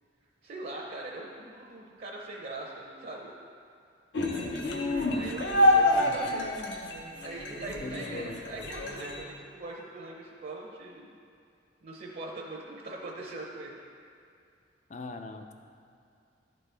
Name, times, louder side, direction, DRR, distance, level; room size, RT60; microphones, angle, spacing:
voice 1, 0.4-3.3 5.1-6.5 7.2-11.2 11.8-13.8, right 2 dB, 50° right, -2 dB, 0.7 m, -41 dB
sound 1, 4.1-9.2, left 1 dB, 70° left, 0.7 m, -27 dB
voice 2, 4.5-6.2 7.8-8.4 14.9-15.5, left 2 dB, 40° left, 6 dB, 0.4 m, -40 dB
10.5 x 4.2 x 3.4 m, 2.4 s
head